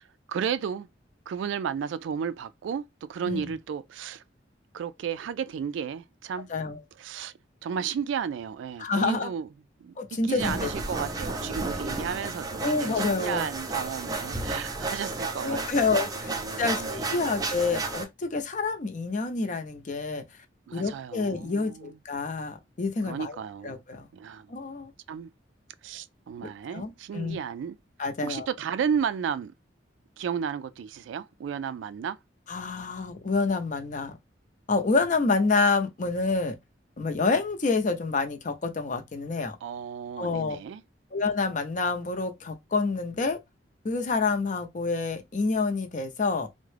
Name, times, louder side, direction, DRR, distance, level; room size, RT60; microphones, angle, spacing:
voice 1, 0.3-0.9 1.3-4.2 4.7-6.5 7.0-7.3 7.6-9.5 9.8-15.9 16.2-17.3 20.7-22.0 23.0-23.8 24.1-24.5 25.1-25.3 25.8-27.8 28.2-29.5 30.2-32.2 39.6-40.8, right 7 dB, 80° right, 0.3 m, -33 dB
voice 2, 3.2-3.5 6.5-6.8 8.8-9.3 10.0-10.7 12.6-13.5 15.4-16.3 16.6-20.2 20.7-23.4 23.6-24.1 24.5-24.9 26.4-27.4 28.0-28.5 32.5-34.2 34.7-36.6 37.0-39.6 40.2-40.6 41.1-43.4 43.8-46.5, left 3 dB, 45° left, 0.6 m, -28 dB
sound 1, 10.4-18.0, right 2 dB, 20° right, 0.5 m, -32 dB
3.5 x 2.1 x 3.2 m
head